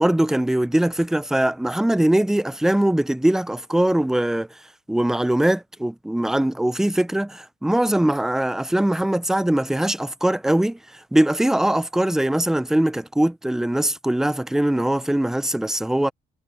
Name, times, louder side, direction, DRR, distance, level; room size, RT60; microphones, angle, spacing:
voice 1, 0.0-4.5 4.9-16.1, right 1 dB, 5° right, 0.6 m, -21 dB
cardioid pair, 110°, 17 cm